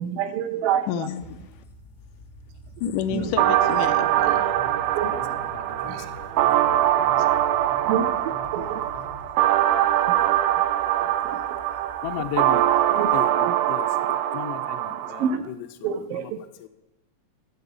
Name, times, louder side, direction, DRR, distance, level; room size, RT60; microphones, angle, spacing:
voice 1, 0.0-1.1 3.1-3.3 4.1-5.1 5.9-6.1 6.8-7.3 7.8-8.9 10.2-10.3 11.2-11.4 12.9-13.5 15.2-15.5 15.8-16.4, right 8 dB, 65° right, 1.6 m, -29 dB
voice 2, 0.9-1.2 2.8-4.5, left 9 dB, 85° left, 2.4 m, -29 dB
sound 1, 1.2-13.2, left 1 dB, 45° left, 0.6 m, -49 dB
sound 2, 3.0-9.3, right 1 dB, 50° right, 1.5 m, -44 dB
sound 3, 3.4-15.4, right 12 dB, 80° right, 2.0 m, -23 dB
voice 3, 5.0-6.3 12.0-12.7 13.1-16.3 16.6-16.7, left 10 dB, 70° left, 1.6 m, -36 dB
14.0 x 4.8 x 8.3 m
omnidirectional pair, 3.6 m